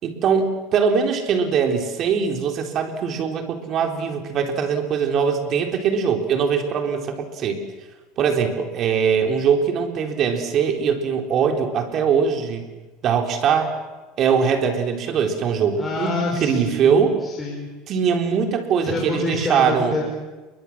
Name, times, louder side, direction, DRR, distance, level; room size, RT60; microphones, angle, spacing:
voice 1, 0.0-7.6 8.2-12.7 13.0-13.7 14.2-16.1 16.4-17.1 17.9-20.0, right 6 dB, 40° right, 4 dB, 3.9 m, -21 dB
voice 2, 15.8-17.7 18.8-20.0, left 2 dB, 15° left, -2 dB, 5.0 m, -27 dB
28.0 x 23.0 x 7.5 m, 1.2 s
supercardioid pair, 140°, 0 cm